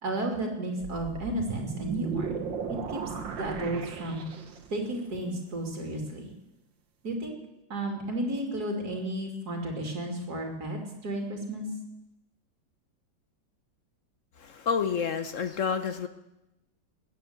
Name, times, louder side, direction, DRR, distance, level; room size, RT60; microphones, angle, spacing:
voice 1, 0.0-2.3 2.9-3.0 3.3-4.2 4.7-6.3 7.0-7.3 7.7-11.7, right 1 dB, 55° right, 2 dB, 3.2 m, -33 dB
sound 1, 0.8-4.8, right 6 dB, 90° right, 2.0 m, -35 dB
voice 2, 14.4-16.1, left 6 dB, 55° left, 10 dB, 1.0 m, -29 dB
20.5 x 8.4 x 8.0 m, 0.93 s
omnidirectional pair, 2.0 m